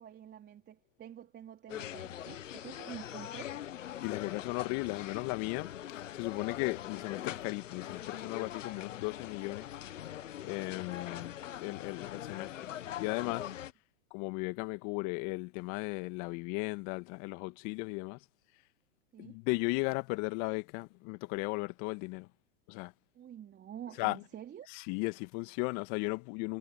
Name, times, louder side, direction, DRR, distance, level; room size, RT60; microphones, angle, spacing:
voice 1, 0.0-3.6 10.7-11.3 19.1-19.4 23.1-24.7, right 10 dB, 25° right, 4.2 m, -48 dB
sound 1, 1.7-13.7, left 11 dB, 80° left, 1.6 m, -42 dB
voice 2, 4.0-5.7 6.1-9.8 10.4-11.3 11.6-12.7 13.0-13.5 14.1-18.2 19.2-22.3 22.7-22.9 24.0-24.2 24.7-26.6, left 28 dB, 45° left, 1.9 m, -36 dB
hypercardioid pair, 105°, 38 cm